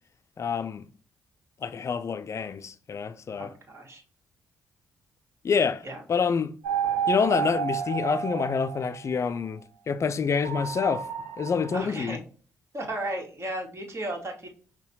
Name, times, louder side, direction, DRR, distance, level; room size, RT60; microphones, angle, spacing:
voice 1, 0.4-0.8 1.6-3.5 5.4-5.8 6.1-6.5 7.1-11.1 11.4-12.2, left 6 dB, 40° left, 0.4 m, -27 dB
voice 2, 3.4-4.0 5.8-6.0 11.7-12.2 12.7-14.5, right 1 dB, 35° right, 1.4 m, -34 dB
sound 1, 6.6-9.2 10.4-11.8, right 8 dB, 85° right, 0.5 m, -30 dB
5.5 x 2.2 x 2.7 m
hypercardioid pair, 45°, 7 cm